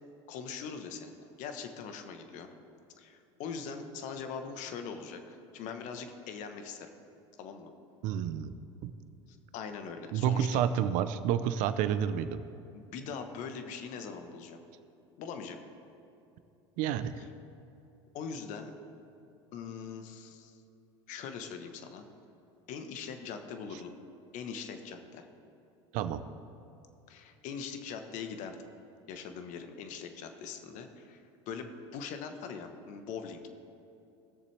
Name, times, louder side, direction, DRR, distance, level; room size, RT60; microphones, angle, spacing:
voice 1, 0.3-2.5 3.0-6.9 7.4-7.7 9.5-10.9 12.7-14.6 15.2-15.6 17.2-17.3 18.1-18.7 19.5-20.6 21.1-22.1 22.7-23.9 24.3-25.3 27.1-28.6 29.1-33.5, left 6 dB, 55° left, 7 dB, 1.2 m, -42 dB
voice 2, 8.0-8.5 8.8-8.9 10.1-12.4 16.8-17.1 25.9-26.2, right 9 dB, 60° right, 12 dB, 0.7 m, -29 dB
19.0 x 6.7 x 3.4 m, 2.8 s
hypercardioid pair, 90°, 15 cm